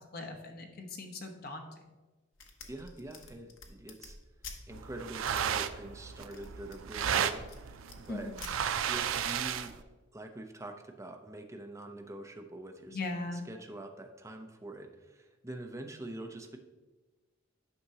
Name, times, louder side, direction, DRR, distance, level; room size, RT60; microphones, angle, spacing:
voice 1, 0.1-1.7 8.1-8.4 12.9-13.4, left 2 dB, 50° left, 4 dB, 1.0 m, -39 dB
sound 1, 2.3-4.6 5.3-5.4 6.1-7.6 7.9-8.5, left 4 dB, 75° left, 1.0 m, -48 dB
voice 2, 2.7-4.2 4.7-8.3 8.9-9.7 10.1-13.0 13.3-16.6, right 1 dB, 15° right, 3 dB, 0.6 m, -45 dB
sound 2, 4.7-9.8, right 8 dB, 90° right, 0.4 m, -34 dB
9.6 x 5.9 x 2.8 m, 1.2 s
head